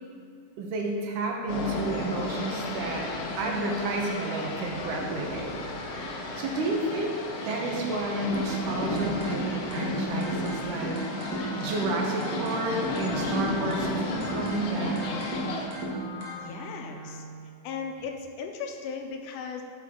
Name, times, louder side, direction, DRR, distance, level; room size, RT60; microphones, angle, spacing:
voice 1, 0.6-3.1 3.4-5.6 6.4-7.2 7.5-11.0 11.6-15.0, right 2 dB, 80° right, 0 dB, 2.5 m, -31 dB
sound 1, 1.5-15.7, left 2 dB, 65° left, 1.7 m, -34 dB
sound 2, 8.3-16.3, right 3 dB, 60° right, 1.2 m, -35 dB
Wind instrument woodwind instrument, 9.7-17.6, left 3 dB, 30° left, 0.8 m, -41 dB
voice 2, 16.3-17.2 17.6-19.6, left 5 dB, 85° left, 3 dB, 2.1 m, -37 dB
8.2 x 6.5 x 3.6 m, 2.4 s
omnidirectional pair, 3.6 m